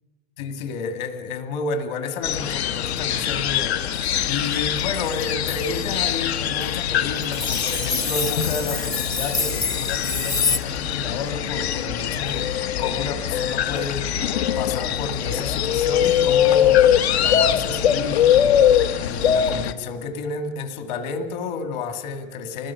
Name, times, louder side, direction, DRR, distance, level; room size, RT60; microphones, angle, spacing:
voice 1, 0.4-22.7, left 4 dB, 45° left, 7 dB, 2.2 m, -31 dB
sound 1, 2.2-19.7, left 9 dB, 80° left, 1.3 m, -22 dB
sound 2, 3.8-6.0 6.6-6.8 7.2-10.6, left 4 dB, 15° left, 0.6 m, -28 dB
25.5 x 20.0 x 5.8 m, 1.3 s
supercardioid pair, 175°, 32 cm